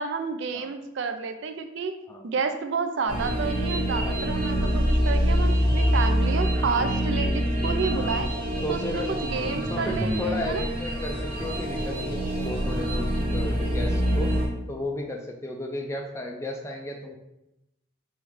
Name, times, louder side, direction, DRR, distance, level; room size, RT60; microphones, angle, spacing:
voice 1, 0.0-1.9 2.2-8.3 8.7-10.6, right 5 dB, 60° right, 7 dB, 0.4 m, -30 dB
sound 1, 3.1-14.5, equal, 30° right, 1.1 m, -25 dB
voice 2, 8.6-9.1 9.7-14.3 14.7-17.2, left 1 dB, 15° left, 1 dB, 0.3 m, -34 dB
3.4 x 3.1 x 3.1 m, 0.89 s
head